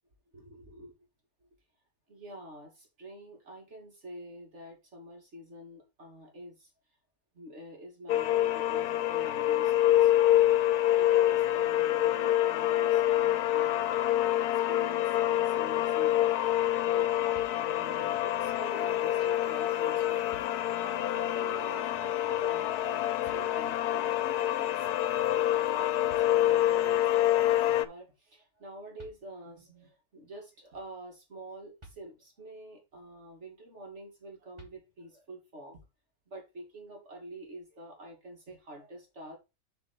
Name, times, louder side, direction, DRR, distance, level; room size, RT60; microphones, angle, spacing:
voice 1, 0.3-1.0 2.1-6.7 7.3-10.6 10.9-13.9 14.4-17.1 17.5-20.2 20.8-25.1 25.3-27.1 27.5-35.8 36.3-39.4, right 1 dB, 50° right, 2.7 m, -47 dB
sound 1, 8.1-27.8, left 13 dB, 85° left, 1.1 m, -26 dB
sound 2, 17.3-18.1 19.6-19.7 20.3-21.1 23.2-24.0 25.7-25.8 26.1-26.9 28.6-28.7 29.0-29.7 31.8-32.6 34.5-35.3, right 1 dB, 20° right, 1.8 m, -56 dB
7.9 x 4.4 x 4.3 m
omnidirectional pair, 1.6 m